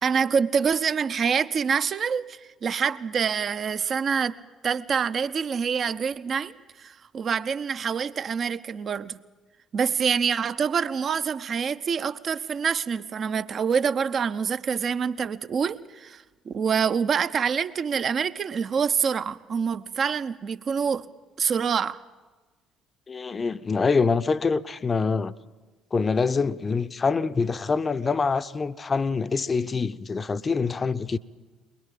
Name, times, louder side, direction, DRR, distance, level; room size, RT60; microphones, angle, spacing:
voice 1, 0.0-4.4 4.6-9.2 9.7-21.1 21.4-22.0, right 6 dB, 40° right, 0.8 m, -26 dB
voice 2, 23.1-25.3 25.9-31.2, left 4 dB, 30° left, 0.8 m, -25 dB
22.0 x 22.0 x 7.4 m
figure-of-eight pair, 50°, 0 cm